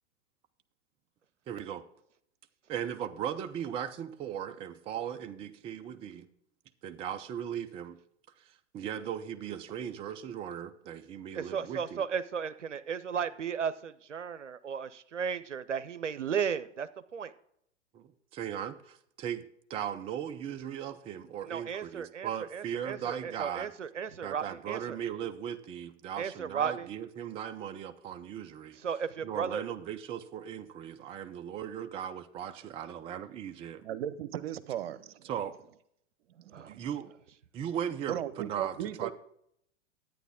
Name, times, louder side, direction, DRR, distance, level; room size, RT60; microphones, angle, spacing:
voice 1, 1.5-1.8 2.7-6.3 6.8-8.0 8.4-12.0 17.9-19.4 19.7-23.7 24.2-28.8 29.2-33.9 35.2-35.6 36.7-37.1 37.5-39.1, right 9 dB, 15° right, 0.4 m, -38 dB
voice 2, 11.3-17.3 21.4-25.0 26.2-26.9 28.8-29.6 36.5-36.8, right 7 dB, 85° right, 0.6 m, -35 dB
voice 3, 33.8-35.3 36.4-36.9 38.1-39.1, right 11 dB, 55° right, 0.9 m, -37 dB
11.0 x 9.2 x 3.6 m
figure-of-eight pair, 95°, 36 cm